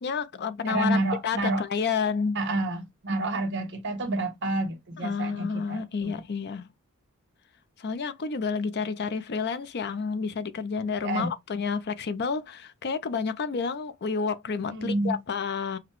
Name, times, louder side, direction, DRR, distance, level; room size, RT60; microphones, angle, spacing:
voice 1, 0.0-2.4 5.0-6.7 7.8-15.8, left 5 dB, 50° left, 0.5 m, -30 dB
voice 2, 0.6-1.6 2.3-6.2 11.0-11.3 14.7-15.2, right 2 dB, 55° right, 1.1 m, -29 dB
5.7 x 2.2 x 3.0 m
head